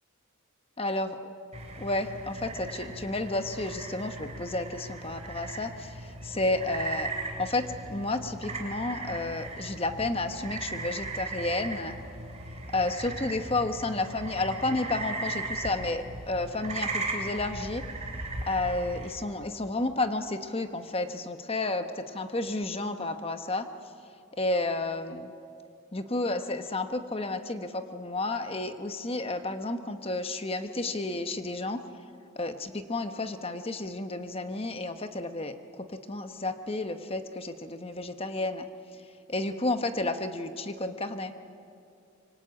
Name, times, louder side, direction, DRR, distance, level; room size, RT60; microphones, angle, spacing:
voice 1, 0.8-1.2 1.8-7.1 7.4-12.0 12.7-17.8 18.5-23.7 24.4-25.3 25.9-31.8 32.4-38.7 39.3-41.3, left 2 dB, 25° left, 8 dB, 1.0 m, -31 dB
sound 1, 1.5-19.1, right 2 dB, 30° right, 3.2 m, -37 dB
25.5 x 24.0 x 8.7 m, 2.6 s
head